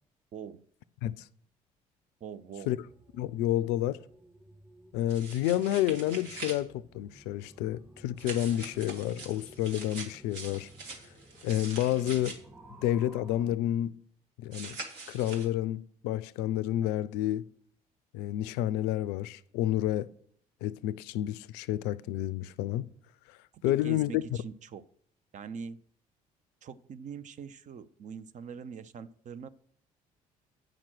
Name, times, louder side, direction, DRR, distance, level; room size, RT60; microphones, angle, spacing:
voice 1, 0.3-0.6 2.2-2.7 23.5-24.8 25.3-25.8 26.6-29.5, right 6 dB, 40° right, 0.5 m, -43 dB
sound 1, 2.4-13.6, right 1 dB, 15° right, 2.0 m, -55 dB
voice 2, 3.1-4.0 4.9-10.7 11.4-12.4 12.8-13.9 14.4-14.8 15.1-17.4 18.1-20.1 20.6-22.9 23.6-24.2, left 13 dB, 60° left, 0.4 m, -30 dB
sound 2, 5.1-6.6 8.2-12.3 14.5-15.5, right 3 dB, 65° right, 1.7 m, -43 dB
8.9 x 5.9 x 6.1 m
figure-of-eight pair, 50°, 19 cm